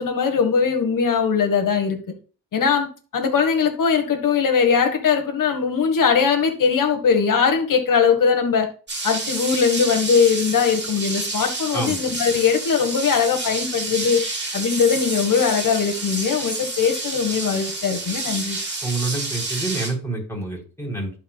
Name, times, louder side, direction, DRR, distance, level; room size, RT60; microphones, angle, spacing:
voice 1, 0.0-2.0 2.5-8.7 9.0-14.2 14.5-18.6, left 6 dB, 60° left, 4 dB, 1.6 m, -20 dB
sound 1, 8.9-19.9, right 3 dB, 30° right, 3.3 m, -29 dB
voice 2, 18.8-21.1, right 2 dB, 5° left, -2 dB, 3.9 m, -27 dB
12.0 x 4.8 x 2.4 m, 0.36 s
cardioid pair, 75°, 35 cm